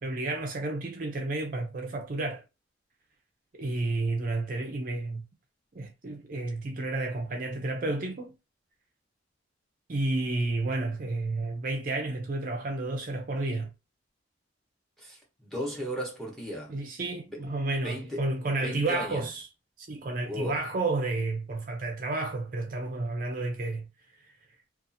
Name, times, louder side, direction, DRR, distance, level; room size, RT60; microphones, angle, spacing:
voice 1, 0.0-2.4 3.5-5.2 5.7-8.3 9.9-13.7 16.7-19.4 19.8-23.9, right 2 dB, 45° right, 0.5 m, -31 dB
voice 2, 15.0-16.8 17.3-17.4 17.8-18.3 18.6-19.3 20.2-20.7, equal, ahead, 0.9 m, -36 dB
2.6 x 2.4 x 2.6 m
head